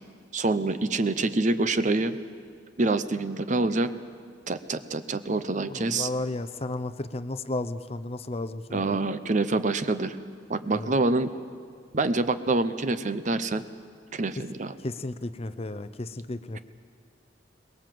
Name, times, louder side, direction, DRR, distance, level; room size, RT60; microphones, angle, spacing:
voice 1, 0.3-2.2 2.8-3.9 4.5-6.1 8.7-10.2 10.5-11.3 11.9-13.6 14.1-14.7, right 2 dB, 40° right, 12 dB, 0.8 m, -26 dB
voice 2, 5.7-9.0 10.7-10.9 14.8-16.6, left 2 dB, 35° left, 12 dB, 0.6 m, -33 dB
23.0 x 20.5 x 7.7 m, 2.1 s
head